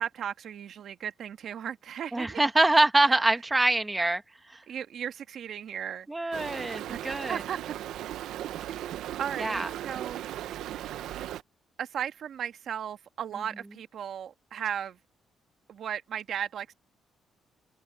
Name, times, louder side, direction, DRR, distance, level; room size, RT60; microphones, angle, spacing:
voice 1, 0.0-2.4 4.7-7.0 7.3-7.6 9.2-10.2 11.8-15.0 15.7-16.7, right 9 dB, 65° right, 1.4 m, -36 dB
voice 2, 2.1-4.2 4.5-4.6 6.1-7.4 9.4-9.7, right 2 dB, 15° right, 1.6 m, -24 dB
Stream, 6.3-11.4, right 12 dB, 85° right, 0.9 m, -37 dB
cardioid pair, 90°, 0 cm